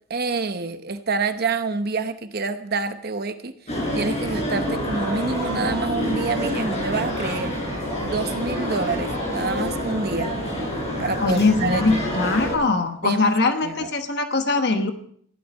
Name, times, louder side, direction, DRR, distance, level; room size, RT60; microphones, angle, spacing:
voice 1, 0.1-7.5 8.0-10.3 11.0-12.0 13.0-13.3 13.6-13.9, right 4 dB, 45° right, 9 dB, 0.9 m, -27 dB
sound 1, 3.7-12.6, equal, 30° left, 6.2 m, -27 dB
voice 2, 11.2-14.9, left 3 dB, 50° left, 6 dB, 1.2 m, -21 dB
16.0 x 12.0 x 5.4 m, 0.63 s
head